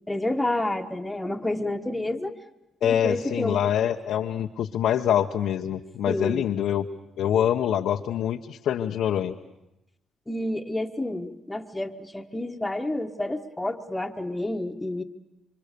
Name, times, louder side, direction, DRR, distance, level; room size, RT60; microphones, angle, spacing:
voice 1, 0.1-2.3 2.8-3.6 6.1-6.5 10.3-15.0, left 1 dB, 10° left, 4 dB, 1.6 m, -29 dB
voice 2, 2.8-6.8 7.2-9.3, left 10 dB, 80° left, 2 dB, 0.9 m, -25 dB
26.5 x 25.0 x 6.9 m, 0.91 s
cardioid pair, 90°, 0 cm